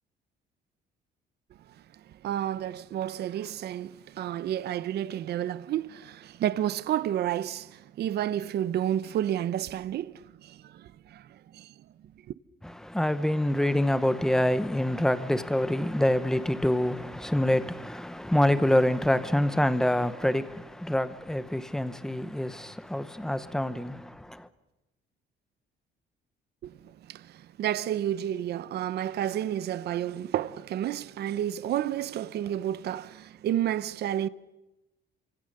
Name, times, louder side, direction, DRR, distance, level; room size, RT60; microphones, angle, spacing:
voice 1, 2.2-11.7 26.6-34.3, right 11 dB, 55° right, 0.8 m, -31 dB
voice 2, 12.6-24.5, left 1 dB, 5° left, 1.0 m, -26 dB
28.0 x 26.0 x 6.7 m
cardioid pair, 175°, 20 cm